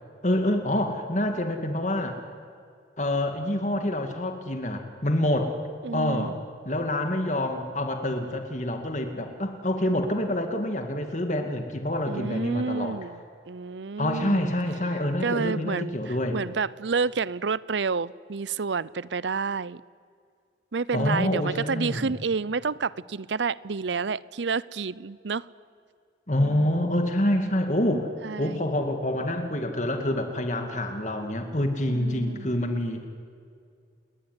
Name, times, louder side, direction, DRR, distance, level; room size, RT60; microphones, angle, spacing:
voice 1, 0.2-2.2 3.0-5.6 5.9-6.4 6.7-13.0 14.0-16.4 20.9-22.1 26.3-28.1 28.4-33.1, left 1 dB, 40° left, 2.3 m, -27 dB
voice 2, 5.8-6.4 12.1-14.5 15.2-19.8 20.7-25.5 26.4-27.0 28.2-28.7 31.9-32.5, right 5 dB, 80° right, 0.6 m, -30 dB
29.0 x 20.5 x 9.8 m
head